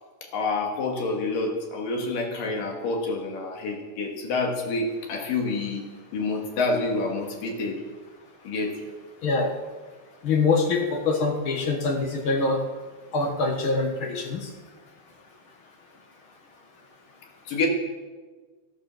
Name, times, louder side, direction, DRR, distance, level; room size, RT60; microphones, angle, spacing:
voice 1, 0.3-5.8 6.1-7.8 8.4-8.8 17.5-17.7, left 3 dB, 80° left, 2 dB, 3.8 m, -28 dB
voice 2, 9.2-9.6 10.2-12.6 13.1-14.5, left 3 dB, 50° left, 4 dB, 1.7 m, -24 dB
15.0 x 12.0 x 6.2 m, 1.4 s
omnidirectional pair, 3.8 m